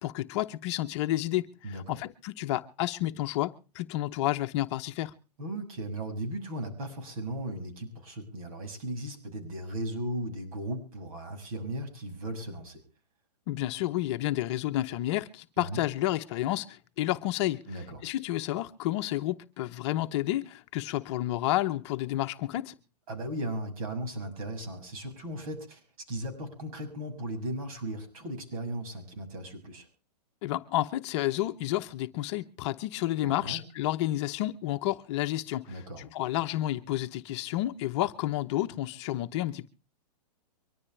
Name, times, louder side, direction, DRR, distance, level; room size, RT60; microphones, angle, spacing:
voice 1, 0.0-5.1 13.5-17.6 18.0-22.7 30.4-39.7, left 15 dB, 45° left, 0.9 m, -30 dB
voice 2, 1.6-2.0 5.4-12.8 15.6-15.8 17.7-18.0 23.1-29.9 33.2-33.6 35.7-36.1, right 1 dB, 60° right, 6.6 m, -37 dB
24.0 x 13.0 x 3.3 m
hypercardioid pair, 130°, 20 cm